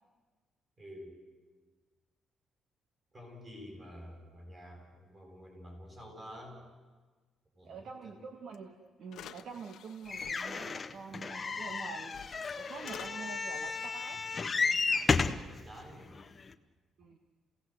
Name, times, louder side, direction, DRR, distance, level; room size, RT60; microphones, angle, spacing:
voice 1, 0.8-1.2 3.1-6.6 7.6-8.2 15.4-16.2, equal, 25° right, 1 dB, 7.7 m, -49 dB
voice 2, 7.6-14.2 17.0-17.2, right 5 dB, 55° right, 5 dB, 1.6 m, -46 dB
sound 1, 8.5-8.6 9.1-10.3 11.7-11.8 12.1-13.1, left 11 dB, 75° left, 1.2 m, -49 dB
sound 2, 10.1-15.5 16.2-16.3 16.5-16.6, left 4 dB, 25° left, 0.9 m, -33 dB
29.5 x 17.5 x 8.0 m, 1.4 s
cardioid pair, 155°, 0 cm